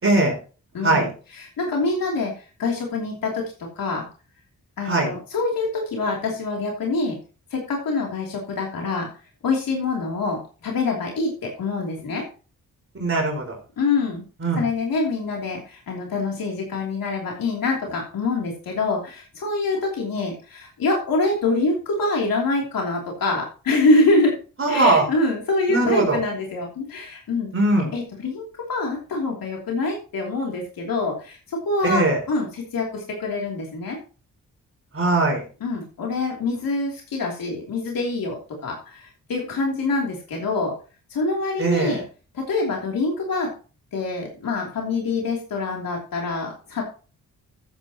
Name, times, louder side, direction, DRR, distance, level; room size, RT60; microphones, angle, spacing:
voice 1, 0.0-0.3 0.8-1.1 4.8-5.1 12.9-13.6 14.4-14.6 24.6-25.0 25.7-26.2 27.5-27.9 31.8-32.2 34.9-35.4 41.6-42.0, right 2 dB, 40° right, 1 dB, 4.7 m, -20 dB
voice 2, 0.7-4.0 4.8-7.2 7.5-9.1 9.4-12.2 13.8-14.2 14.5-24.3 24.7-27.5 27.9-34.0 35.6-40.8 41.1-42.0 42.3-43.5 43.9-46.8, left 3 dB, 85° left, -1 dB, 3.1 m, -25 dB
14.0 x 8.7 x 2.9 m, 0.36 s
wide cardioid pair, 100°, 34 cm